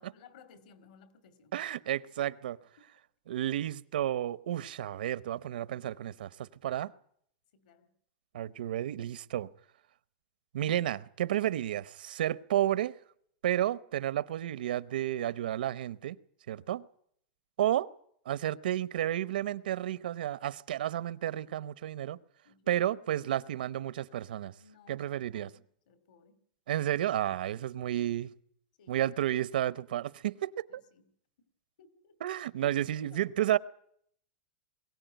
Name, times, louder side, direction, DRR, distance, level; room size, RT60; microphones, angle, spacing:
voice 1, 0.0-1.6 2.8-2.9 7.5-7.9 21.4-21.6 22.4-22.8 24.3-26.4 28.8-29.1 30.7-31.1 31.4-31.5 31.8-32.2 33.1-33.4, left 5 dB, 60° left, 2.7 m, -60 dB
voice 2, 1.5-2.6 3.3-6.9 8.3-9.5 10.5-12.9 13.4-16.2 16.5-16.9 17.6-17.9 18.3-22.2 22.7-24.5 24.9-25.5 26.7-28.3 28.9-30.8 32.2-33.6, right 12 dB, 90° right, 0.8 m, -31 dB
22.5 x 16.5 x 9.2 m
supercardioid pair, 180°, 5 cm